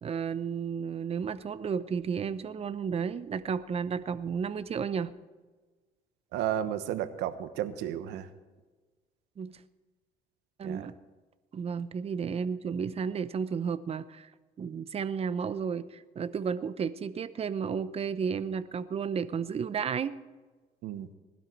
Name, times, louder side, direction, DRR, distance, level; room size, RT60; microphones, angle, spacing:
voice 1, 0.0-5.1 9.4-9.6 10.6-10.9 11.5-14.3 14.6-20.2, right 6 dB, 35° right, 14 dB, 0.8 m, -32 dB
voice 2, 6.3-8.3 10.6-10.9 20.8-21.1, right 11 dB, 85° right, 11 dB, 1.2 m, -33 dB
19.5 x 12.5 x 4.6 m, 1.3 s
cardioid pair, 110°, 17 cm